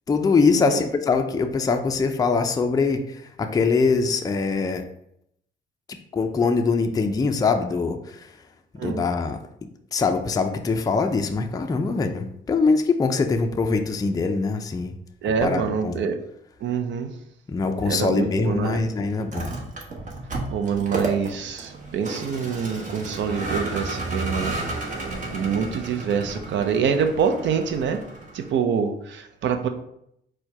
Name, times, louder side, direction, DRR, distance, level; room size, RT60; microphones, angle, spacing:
voice 1, 0.1-4.8 6.1-8.4 8.8-9.4 9.9-15.0 15.2-16.1 17.5-19.5, left 4 dB, 20° left, 5 dB, 0.4 m, -23 dB
voice 2, 15.2-16.2 16.6-17.1 17.9-18.8 20.5-24.6 25.3-28.0 28.3-29.7, right 6 dB, 70° right, 7 dB, 0.6 m, -25 dB
Vehicle, 19.2-28.6, right 2 dB, 40° right, 1.1 m, -32 dB
4.4 x 2.2 x 4.6 m, 0.76 s
cardioid pair, 90°, 20 cm